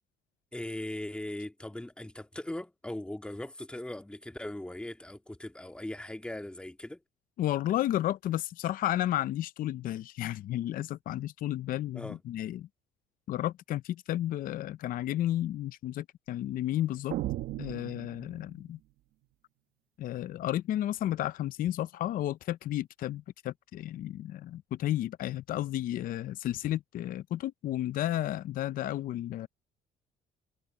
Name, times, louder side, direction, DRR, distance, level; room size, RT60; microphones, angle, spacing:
voice 1, 0.5-7.0 11.9-12.2, left 1 dB, 5° left, 1.9 m, -39 dB
voice 2, 7.4-12.7 13.3-17.1 17.6-18.8 20.0-29.5, left 13 dB, 55° left, 0.5 m, -32 dB
sound 1, 17.1-18.7, right 15 dB, 75° right, 1.0 m, -36 dB
cardioid pair, 110°, 17 cm